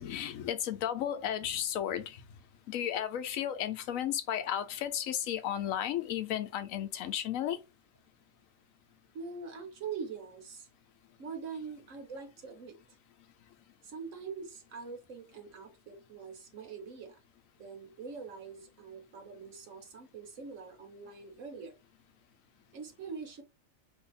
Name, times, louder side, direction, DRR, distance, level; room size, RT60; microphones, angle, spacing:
voice 1, 0.0-2.2 2.7-7.6, left 10 dB, 85° left, 1.0 m, -34 dB
voice 2, 9.1-10.7 11.2-12.8 13.8-17.2 17.6-21.8 22.7-23.4, right 5 dB, 70° right, 1.3 m, -43 dB
2.7 x 2.7 x 3.9 m
omnidirectional pair, 1.4 m